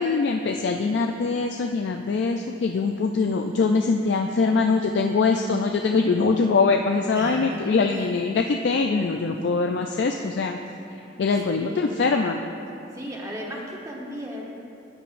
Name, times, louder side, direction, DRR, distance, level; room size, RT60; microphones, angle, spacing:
voice 1, 0.0-10.6 11.2-12.4, left 4 dB, 65° left, 3 dB, 0.3 m, -23 dB
voice 2, 7.1-8.1 11.4-11.9 12.9-14.6, equal, 15° right, -2 dB, 1.0 m, -35 dB
11.5 x 8.9 x 2.5 m, 2.6 s
head